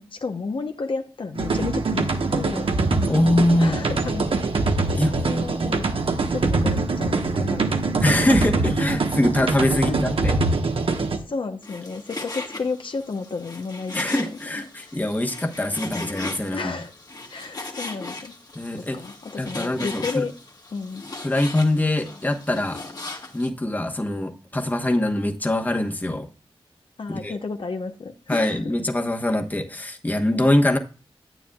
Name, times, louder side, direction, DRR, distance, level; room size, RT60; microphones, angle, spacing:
voice 1, 0.0-2.7 3.5-4.3 5.1-5.9 6.3-8.4 8.6-8.7 9.7-10.0 11.2-15.0 16.5-16.9 17.3-18.3 18.7-20.3 20.7-21.0 27.0-28.8, left 4 dB, 60° left, 0.9 m, -32 dB
sound 1, 1.4-11.2, right 3 dB, 70° right, 1.2 m, -23 dB
voice 2, 3.1-3.8 5.0-5.1 8.0-10.3 13.9-16.7 18.5-19.0 19.4-20.2 21.2-22.8 23.3-26.3 27.1-27.3 28.3-30.8, left 1 dB, 15° left, 1.1 m, -23 dB
Frying (food), 11.6-23.5, left 2 dB, 40° left, 1.7 m, -38 dB
10.0 x 9.0 x 2.3 m
wide cardioid pair, 115°, 10 cm